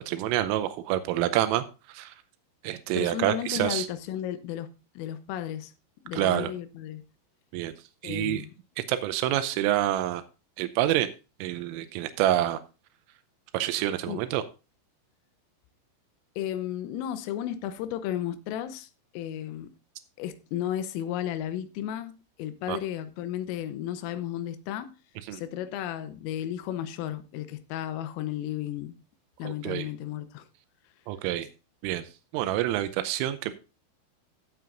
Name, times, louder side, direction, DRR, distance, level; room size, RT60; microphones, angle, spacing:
voice 1, 0.1-2.1 2.6-3.9 6.1-6.5 7.5-7.7 8.0-8.4 8.9-10.2 10.6-11.1 11.4-12.6 13.5-14.4 22.7-22.8 25.3-25.4 29.4-29.9 31.1-31.5 31.8-32.1 32.3-33.6, right 13 dB, 85° right, 3.3 m, -27 dB
voice 2, 3.0-5.7 6.1-7.0 8.0-8.5 14.1-14.2 16.4-19.8 20.2-24.9 25.3-29.0 29.4-30.5, left 11 dB, 85° left, 3.5 m, -34 dB
16.5 x 7.6 x 2.5 m
omnidirectional pair, 5.8 m